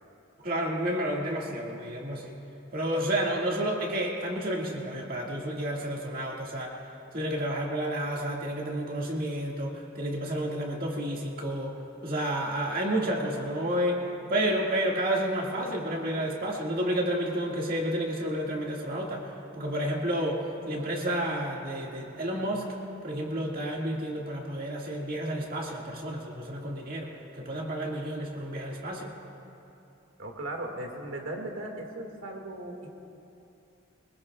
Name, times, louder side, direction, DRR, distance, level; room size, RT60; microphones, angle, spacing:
voice 1, 0.4-2.3 2.7-6.8 7.1-14.0 14.3-19.3 19.5-22.7 23.0-29.1, right 1 dB, 45° right, -1 dB, 2.0 m, -30 dB
voice 2, 30.2-32.9, right 1 dB, 85° right, 1 dB, 2.0 m, -37 dB
24.5 x 20.5 x 2.4 m, 2.8 s
head